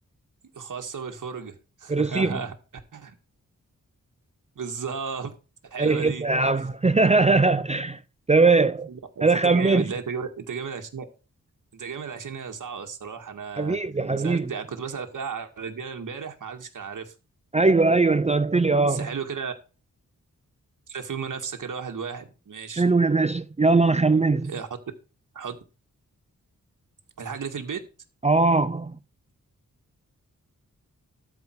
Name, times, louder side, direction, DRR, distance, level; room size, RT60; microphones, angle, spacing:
voice 1, 0.5-2.5 2.9-3.2 4.6-5.3 5.6-6.3 8.9-11.1 11.7-13.8 14.2-17.1 18.9-19.5 20.9-22.8 24.5-24.7 25.3-25.6 27.2-27.8, right 6 dB, 70° right, 2.0 m, -34 dB
voice 2, 1.9-2.4 5.8-8.0 8.3-8.9 9.2-9.8 13.6-14.5 17.5-19.1 22.7-24.5 28.2-29.0, right 3 dB, 20° right, 0.5 m, -20 dB
13.0 x 5.1 x 4.8 m
wide cardioid pair, 135°, 32 cm